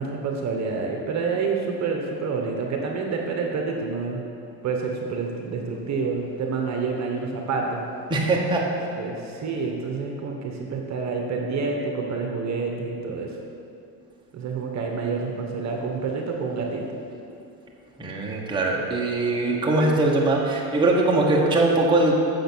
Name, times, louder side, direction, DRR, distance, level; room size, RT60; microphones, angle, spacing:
voice 1, 0.0-4.2 4.6-7.8 8.9-13.3 14.3-16.8, right 4 dB, 40° right, 1 dB, 1.3 m, -28 dB
voice 2, 8.1-8.6 18.0-22.1, right 2 dB, 10° right, -3 dB, 1.2 m, -21 dB
8.0 x 7.0 x 6.2 m, 2.7 s
supercardioid pair, 115°, 44 cm